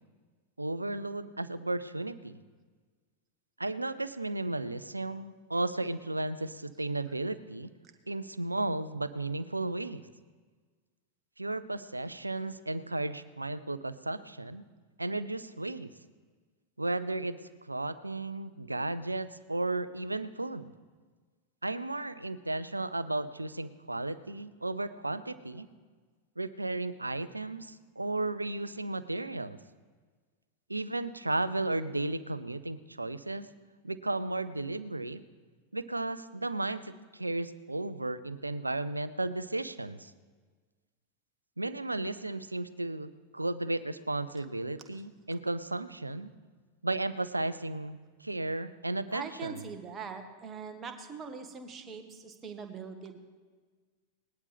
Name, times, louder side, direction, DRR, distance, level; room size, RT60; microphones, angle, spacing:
voice 1, 0.6-2.4 3.6-7.7 8.1-10.0 11.4-14.6 15.0-15.9 16.8-17.4 17.7-20.7 21.6-25.7 26.4-29.6 30.7-33.5 33.8-35.2 35.7-40.1 41.6-46.3 46.8-49.7, right 2 dB, 85° right, 15 dB, 0.5 m, -34 dB
voice 2, 49.1-53.2, right 5 dB, 25° right, 5 dB, 1.6 m, -42 dB
19.5 x 11.5 x 3.5 m, 1.5 s
figure-of-eight pair, 90°, 0 cm